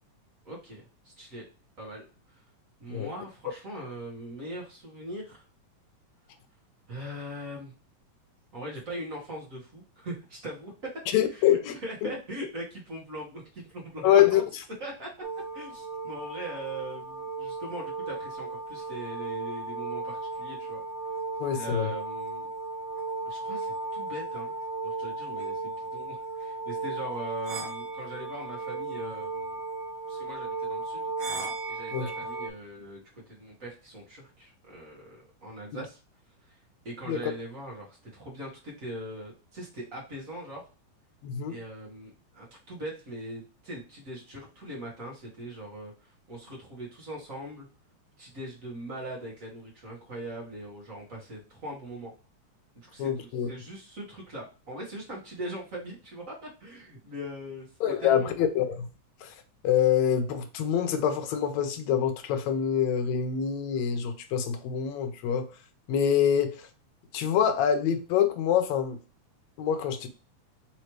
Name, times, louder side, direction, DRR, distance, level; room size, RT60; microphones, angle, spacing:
voice 1, 0.4-1.4 1.8-2.4 2.8-5.4 6.9-7.7 8.5-10.7 11.3-14.4 14.8-15.1 15.5-20.8 21.5-22.5 23.2-24.5 24.8-29.6 30.1-31.0 31.7-36.0 36.4-36.6 36.8-40.7 41.5-47.7 48.2-52.1 52.7-57.7 58.0-58.5, right 1 dB, 45° right, 1.1 m, -41 dB
voice 2, 11.1-11.8 12.0-12.1 14.0-14.4 21.4-21.9 31.9-32.1 35.7-35.8 37.1-37.2 41.2-41.6 53.0-53.5 57.8-58.9 59.2-59.3 59.6-65.5 65.9-66.6 67.1-69.0 69.6-70.1, left 9 dB, 75° left, 1.8 m, -25 dB
sound 1, 15.2-32.5, right 3 dB, 85° right, 1.2 m, -35 dB
4.9 x 3.1 x 3.0 m
omnidirectional pair, 3.5 m